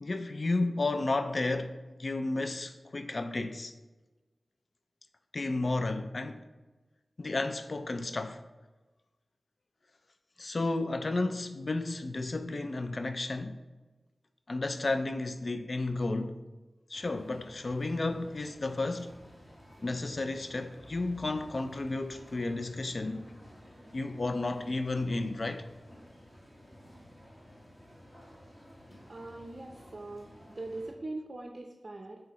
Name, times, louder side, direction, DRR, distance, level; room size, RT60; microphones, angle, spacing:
voice 1, 0.0-1.7 2.0-3.7 5.3-6.4 7.2-8.4 10.4-13.6 14.5-16.4 16.9-19.1 19.8-23.3 23.9-25.6, left 2 dB, 50° left, 0.4 m, -32 dB
sound 1, 16.9-30.9, equal, 20° left, 1.6 m, -54 dB
voice 2, 29.1-32.2, right 2 dB, 40° right, 0.5 m, -42 dB
7.6 x 3.7 x 4.1 m
wide cardioid pair, 95°, 0 cm